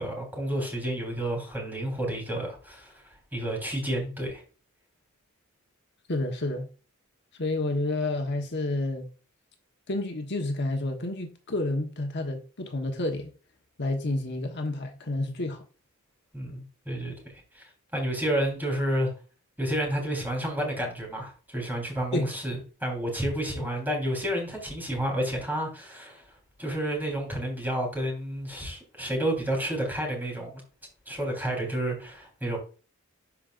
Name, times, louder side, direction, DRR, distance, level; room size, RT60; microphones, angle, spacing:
voice 1, 0.0-2.9 3.3-4.4 16.3-19.1 19.6-26.2 26.6-30.6 31.1-32.6, right 1 dB, 10° right, 3.7 m, -30 dB
voice 2, 6.1-6.7 7.4-9.1 9.9-13.3 13.8-15.6 22.1-22.3 23.5-23.6, left 2 dB, 55° left, 1.3 m, -30 dB
12.0 x 5.2 x 2.5 m
head